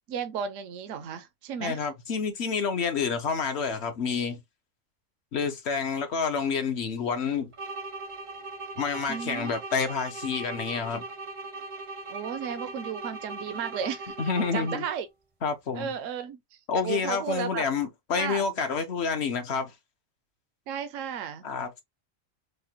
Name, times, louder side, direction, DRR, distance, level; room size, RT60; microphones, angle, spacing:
voice 1, 0.0-1.8 9.1-9.6 12.1-14.1 14.5-15.1 15.7-16.4 16.8-17.6 18.2-18.4 20.7-21.4, right 8 dB, 75° right, 0.9 m, -34 dB
voice 2, 1.6-4.4 5.3-7.5 8.8-11.0 14.2-14.8 15.4-15.9 16.7-19.7 21.4-21.8, left 5 dB, 60° left, 1.0 m, -28 dB
sound 1, 7.5-15.1, right 3 dB, 35° right, 0.5 m, -39 dB
4.9 x 2.2 x 2.7 m
omnidirectional pair, 1.4 m